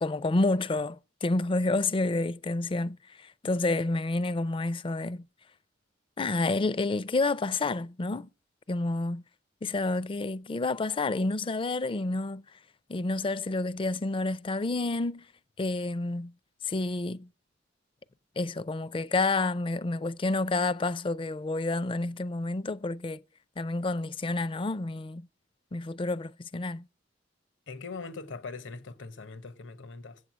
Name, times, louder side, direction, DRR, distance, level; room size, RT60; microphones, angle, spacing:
voice 1, 0.0-5.3 6.2-8.3 8.7-9.2 9.6-12.4 12.9-15.3 15.6-16.3 16.6-17.3 18.4-23.2 23.6-25.3 25.7-26.9, left 2 dB, 30° left, 0.4 m, -29 dB
voice 2, 27.7-30.2, left 4 dB, 75° left, 1.0 m, -41 dB
7.9 x 7.9 x 6.2 m
head